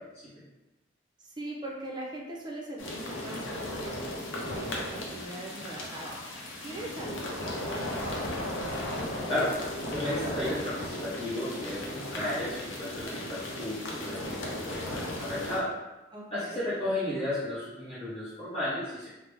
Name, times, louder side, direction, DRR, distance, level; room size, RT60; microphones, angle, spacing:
voice 1, 1.2-8.3 16.1-16.6, right 1 dB, 20° right, -2 dB, 0.5 m, -41 dB
sound 1, 2.8-15.6, left 1 dB, 90° left, 0.6 m, -36 dB
voice 2, 9.9-15.7 16.3-19.1, left 1 dB, 30° left, -12 dB, 0.9 m, -33 dB
3.2 x 2.0 x 3.3 m, 1.0 s
head